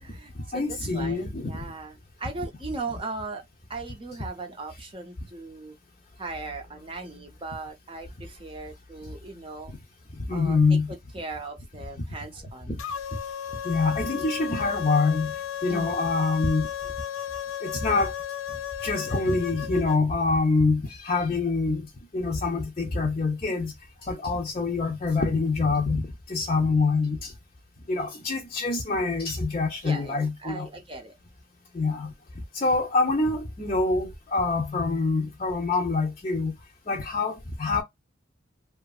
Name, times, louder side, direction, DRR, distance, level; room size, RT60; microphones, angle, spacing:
voice 1, 0.0-3.4 3.7-5.8 6.2-9.8 10.3-12.9 15.7-16.2 29.8-31.2, right 3 dB, 25° right, 0.6 m, -38 dB
voice 2, 0.5-1.5 10.3-10.9 12.7-12.8 13.6-15.3 15.6-16.7 17.6-18.1 18.8-21.9 22.1-23.7 24.0-27.3 27.9-30.7 31.7-32.1 32.5-36.5 36.9-37.8, left 3 dB, 30° left, 0.6 m, -25 dB
sound 1, 12.8-20.0, left 10 dB, 85° left, 0.5 m, -34 dB
2.8 x 2.5 x 2.3 m
head